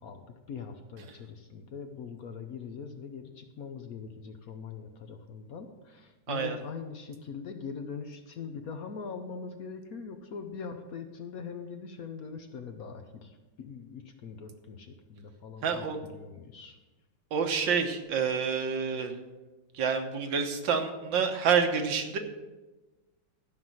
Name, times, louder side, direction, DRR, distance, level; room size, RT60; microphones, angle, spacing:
voice 1, 0.0-16.8, left 5 dB, 60° left, 6 dB, 1.1 m, -42 dB
voice 2, 6.3-6.6 15.6-16.0 17.3-19.2 19.7-22.2, right 6 dB, 75° right, 5 dB, 1.8 m, -28 dB
12.5 x 5.7 x 7.7 m, 1.2 s
omnidirectional pair, 2.1 m